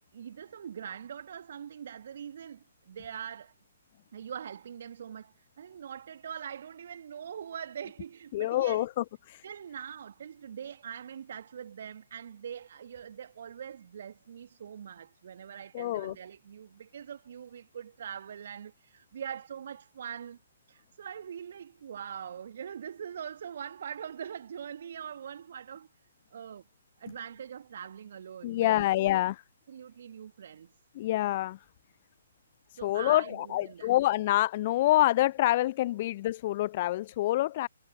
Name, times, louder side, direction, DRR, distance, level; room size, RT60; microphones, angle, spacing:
voice 1, 0.1-3.5 4.1-8.9 9.4-20.4 20.7-25.9 26.3-26.7 27.0-29.2 29.7-30.7 32.7-33.9, right 8 dB, 50° right, 1.7 m, -42 dB
voice 2, 8.3-9.4 15.7-16.2 28.4-29.4 31.0-31.6 32.7-37.7, left 15 dB, 35° left, 0.3 m, -27 dB
figure-of-eight pair, 130°, 0 cm